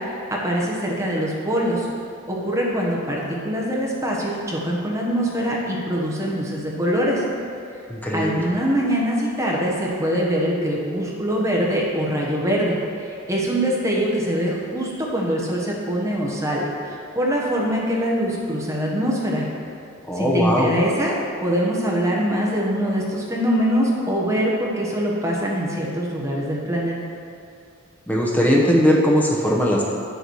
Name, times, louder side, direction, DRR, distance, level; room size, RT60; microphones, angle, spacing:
voice 1, 0.0-1.9 2.3-7.2 8.1-19.5 20.1-27.0, equal, 15° right, -3 dB, 1.2 m, -23 dB
voice 2, 7.9-8.3 20.1-20.7 28.1-29.8, equal, 10° left, -3 dB, 0.9 m, -19 dB
8.8 x 6.8 x 4.7 m, 2.6 s
head